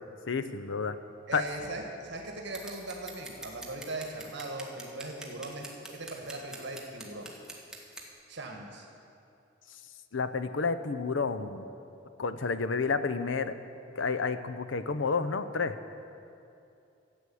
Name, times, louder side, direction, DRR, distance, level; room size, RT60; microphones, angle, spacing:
voice 1, 0.3-1.0 1.3-1.4 10.1-11.6 12.2-13.5 14.0-15.8, left 4 dB, 75° left, 10 dB, 0.7 m, -30 dB
voice 2, 1.3-7.3 8.3-8.9, right 2 dB, 65° right, 1 dB, 1.5 m, -39 dB
Scissors, 2.5-8.1, right 2 dB, 5° right, 1.6 m, -45 dB
14.0 x 8.1 x 8.5 m, 2.7 s
head